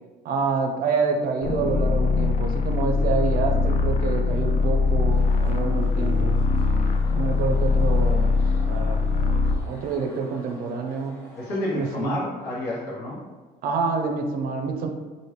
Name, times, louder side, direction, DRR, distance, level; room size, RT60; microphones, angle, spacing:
voice 1, 0.2-6.4 7.1-8.4 8.7-9.3 9.7-11.2 11.7-12.2 13.6-14.9, right 5 dB, 60° right, 4 dB, 0.5 m, -27 dB
sound 1, 1.4-9.7, left 4 dB, 45° left, 0.4 m, -22 dB
sound 2, 5.1-12.0, equal, 15° left, 1.1 m, -47 dB
voice 2, 11.4-13.2, left 1 dB, 90° left, -5 dB, 1.2 m, -29 dB
2.8 x 2.6 x 3.2 m, 1.4 s
cardioid pair, 110°, 17 cm